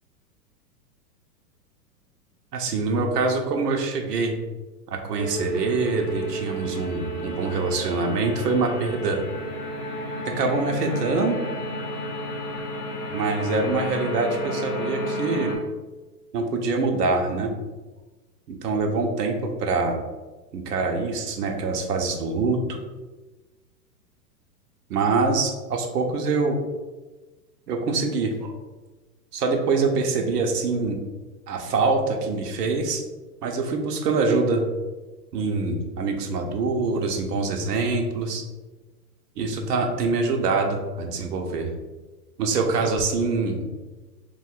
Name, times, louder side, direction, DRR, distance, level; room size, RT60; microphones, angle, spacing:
voice 1, 2.5-4.4 4.9-9.2 10.3-11.4 13.1-15.5 16.3-17.5 18.5-20.0 20.5-22.8 24.9-26.6 27.7-28.5 29.3-31.0 31.5-33.0 33.4-34.6 35.3-38.4 39.4-41.7 42.4-43.7, right 3 dB, 70° right, 3 dB, 0.9 m, -24 dB
sound 1, 5.2-15.6, equal, 30° left, 0.8 m, -32 dB
2.9 x 2.4 x 4.3 m, 1.2 s
hypercardioid pair, 120°, 49 cm